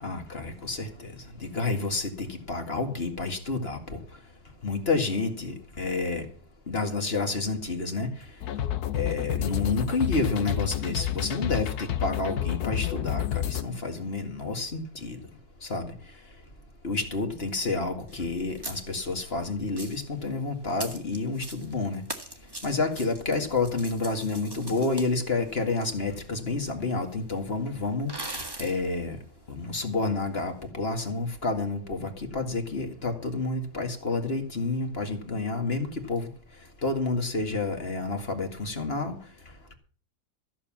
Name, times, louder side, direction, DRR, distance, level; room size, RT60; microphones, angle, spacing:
voice 1, 0.0-1.1 1.4-4.0 4.6-6.2 6.7-8.1 8.9-15.2 15.7-15.9 16.8-22.0 22.6-28.1 28.6-29.2 29.5-36.3 36.8-39.2, left 3 dB, 35° left, 5 dB, 2.1 m, -29 dB
sound 1, 8.4-13.6, left 11 dB, 70° left, 1.3 m, -30 dB
sound 2, 18.1-18.2 18.5-19.2 19.7-20.1 20.7-21.8 22.0-25.9 26.8-26.9 27.1-27.2 28.1-28.8, right 2 dB, 15° right, 1.6 m, -40 dB
14.5 x 7.0 x 7.3 m, 0.42 s
omnidirectional pair, 1.8 m